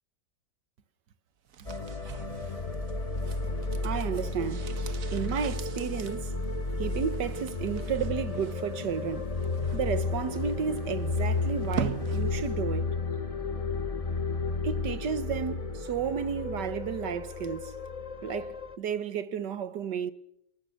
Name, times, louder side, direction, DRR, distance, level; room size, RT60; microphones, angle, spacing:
sound 1, 1.5-12.7 13.0-13.1, right 9 dB, 55° right, 1.4 m, -43 dB
sound 2, 1.7-18.8, left 3 dB, 25° left, 0.8 m, -32 dB
voice 1, 3.8-4.7 5.1-6.3 6.8-9.3 9.7-12.9 14.6-17.8 18.2-20.1, right 7 dB, 85° right, 1.8 m, -32 dB
29.5 x 19.5 x 6.6 m
omnidirectional pair, 1.8 m